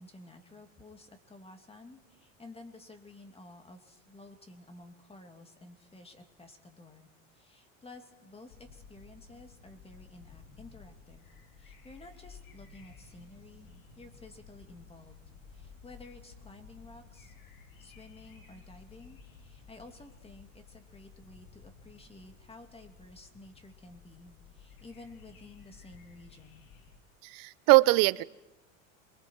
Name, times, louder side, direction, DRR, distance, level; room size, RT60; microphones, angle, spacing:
voice 1, 0.0-11.3 11.6-13.7 14.0-15.2 15.5-17.3 17.8-26.6, left 2 dB, 15° left, 6 dB, 2.6 m, -52 dB
sound 1, 8.5-27.0, left 5 dB, 85° left, 3.2 m, -55 dB
voice 2, 27.2-28.2, right 22 dB, 55° right, 18 dB, 0.8 m, -22 dB
28.5 x 23.5 x 4.7 m, 0.98 s
supercardioid pair, 110°, 40 cm